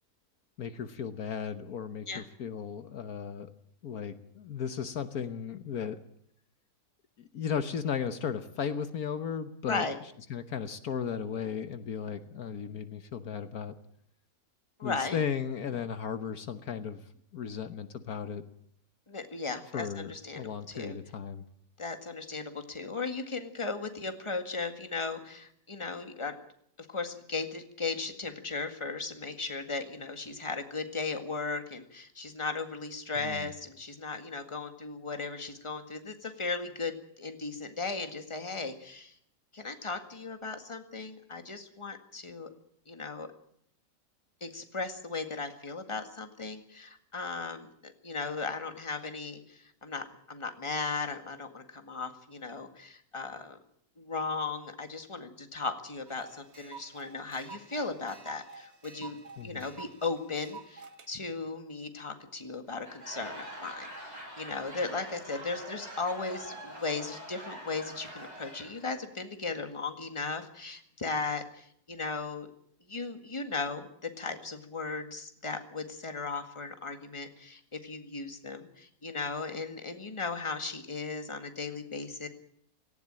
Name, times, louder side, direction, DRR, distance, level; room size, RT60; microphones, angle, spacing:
voice 1, 0.6-3.5 3.8-6.0 7.2-9.8 10.3-13.7 14.8-17.0 17.3-18.4 19.7-21.4 33.1-33.5 59.4-59.7, left 7 dB, 70° left, 10 dB, 1.5 m, -35 dB
voice 2, 9.7-10.0 14.8-15.2 19.1-21.0 21.8-26.4 26.8-39.1 39.5-42.5 42.9-43.3 44.4-53.6 54.0-59.2 59.4-72.5 72.9-82.3, left 4 dB, 20° left, 7 dB, 1.9 m, -37 dB
sound 1, 56.1-61.1, right 5 dB, 45° right, 1.7 m, -49 dB
Laughter / Crowd, 62.7-68.9, right 1 dB, 25° right, 7.2 m, -44 dB
18.0 x 16.5 x 8.9 m, 0.67 s
omnidirectional pair, 1.7 m